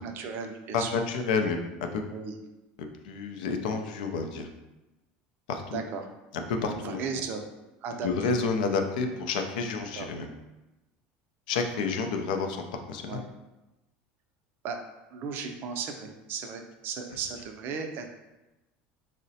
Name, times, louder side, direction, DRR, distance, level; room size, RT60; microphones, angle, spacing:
voice 1, 0.0-0.9 2.1-2.4 5.7-6.0 6.6-7.4 7.8-8.3 10.0-10.1 13.1-13.2 14.6-14.8 15.1-18.1, right 5 dB, 55° right, 5 dB, 0.4 m, -35 dB
voice 2, 0.7-2.0 2.8-4.5 5.5-5.8 6.3-7.0 8.0-10.3 11.5-13.2, left 4 dB, 90° left, 5 dB, 0.4 m, -30 dB
3.8 x 2.0 x 2.7 m, 1.0 s
supercardioid pair, 110°, 4 cm